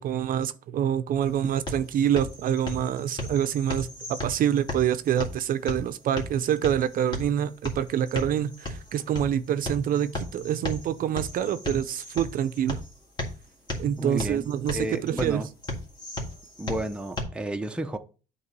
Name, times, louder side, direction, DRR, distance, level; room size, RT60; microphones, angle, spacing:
voice 1, 0.0-12.8 13.8-15.4, right 10 dB, 55° right, 0.5 m, -26 dB
sound 1, 1.2-17.2, left 1 dB, 25° left, 1.8 m, -37 dB
voice 2, 14.0-14.5 14.7-15.5 16.6-18.0, right 1 dB, 5° right, 0.6 m, -31 dB
8.0 x 3.0 x 6.0 m
cardioid pair, 110°, 17 cm